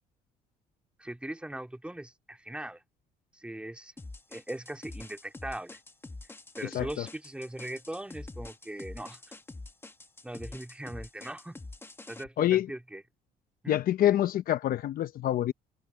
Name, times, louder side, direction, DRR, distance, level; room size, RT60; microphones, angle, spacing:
voice 1, 1.0-2.8 3.3-3.9 4.3-5.8 6.5-9.4 10.2-11.6 12.1-13.0 13.6-13.8, right 1 dB, 5° right, 2.8 m, -40 dB
sound 1, 4.0-12.2, left 2 dB, 15° left, 1.8 m, -45 dB
voice 2, 6.6-7.1 12.4-12.7 13.7-15.5, left 12 dB, 60° left, 0.8 m, -26 dB
open air
cardioid pair, 110°, 17 cm